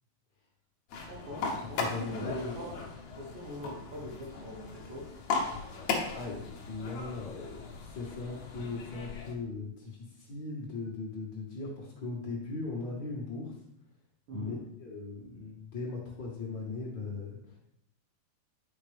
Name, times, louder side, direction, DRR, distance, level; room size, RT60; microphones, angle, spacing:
sound 1, 0.9-9.3, left 4 dB, 65° left, 1.9 m, -37 dB
voice 1, 1.1-2.9 3.1-5.1 14.3-14.6, equal, 65° right, -4 dB, 2.6 m, -42 dB
voice 2, 1.8-2.7 6.1-13.5 14.3-17.6, left 3 dB, 45° left, -4 dB, 1.5 m, -39 dB
9.7 x 5.3 x 3.4 m, 0.75 s
omnidirectional pair, 4.5 m